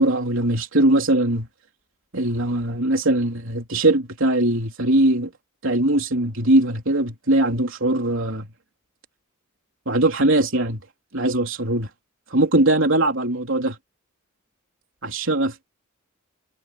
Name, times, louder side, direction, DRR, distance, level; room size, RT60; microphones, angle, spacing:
voice 1, 0.0-1.5 2.1-5.3 5.6-8.5 9.9-10.8 11.1-11.9 12.3-13.8 15.0-15.7, right 1 dB, 65° right, 3.7 m, -20 dB
head